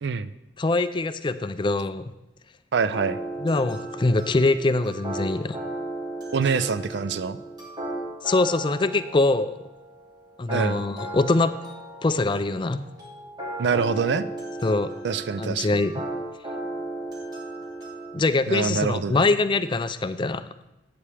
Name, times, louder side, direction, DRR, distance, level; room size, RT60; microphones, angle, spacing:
voice 1, 0.0-0.3 2.7-3.2 6.3-7.4 10.5-10.8 13.6-14.3 15.0-15.8 18.5-19.3, right 5 dB, 70° right, 14 dB, 0.4 m, -25 dB
voice 2, 0.6-2.1 3.4-5.6 8.2-9.6 10.4-11.5 12.0-12.9 14.6-14.9 15.4-15.9 18.1-20.5, left 2 dB, 25° left, 12 dB, 0.4 m, -23 dB
sound 1, 2.9-18.2, right 2 dB, 25° right, 2.8 m, -36 dB
12.0 x 8.5 x 3.4 m, 0.97 s
head